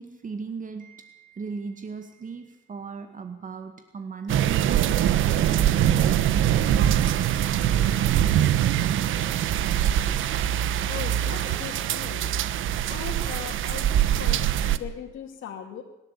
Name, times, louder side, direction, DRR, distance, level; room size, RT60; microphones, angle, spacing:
voice 1, 0.0-4.9 5.2-6.6 11.4-11.6, right 5 dB, 40° right, 7 dB, 2.1 m, -37 dB
sound 1, 4.3-14.8, right 11 dB, 80° right, 1.2 m, -23 dB
voice 2, 10.9-12.3 12.9-15.8, left 8 dB, 75° left, -1 dB, 2.8 m, -39 dB
25.0 x 12.5 x 8.5 m, 0.99 s
cardioid pair, 90°, 20 cm